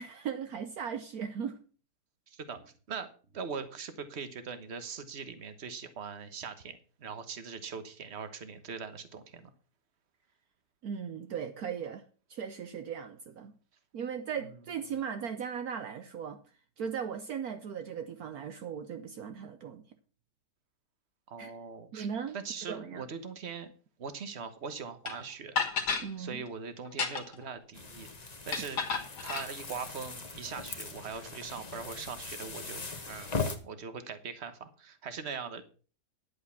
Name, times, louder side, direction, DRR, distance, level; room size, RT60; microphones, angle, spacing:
voice 1, 0.0-1.6 10.8-12.0 12.3-13.5 13.9-16.4 16.8-19.8 21.4-21.5 21.9-22.4 22.6-23.1 26.0-26.4, right 7 dB, 65° right, 1.2 m, -38 dB
voice 2, 2.3-9.5 21.3-22.1 22.3-23.7 24.0-25.6 26.2-28.8 29.2-33.3 33.6-35.6, right 5 dB, 45° right, 1.4 m, -41 dB
sound 1, 25.1-25.2 25.6-26.1 26.9-27.4 28.5-29.5, left 5 dB, 80° left, 2.2 m, -31 dB
sound 2, 27.7-33.6, left 4 dB, 25° left, 1.4 m, -39 dB
10.5 x 8.5 x 5.8 m
omnidirectional pair, 1.8 m